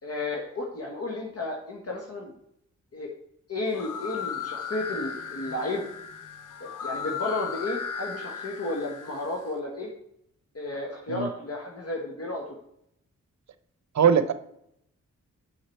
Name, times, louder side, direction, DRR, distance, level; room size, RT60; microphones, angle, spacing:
voice 1, 0.0-2.3 2.9-3.1 3.5-5.8 6.6-9.9 10.5-12.6, left 2 dB, 50° left, -1 dB, 1.3 m, -33 dB
sound 1, 3.7-9.5, left 6 dB, 85° left, 0.8 m, -36 dB
voice 2, 13.9-14.3, right 7 dB, 65° right, 12 dB, 0.6 m, -20 dB
6.7 x 5.7 x 4.4 m, 0.73 s
cardioid pair, 60°, 30 cm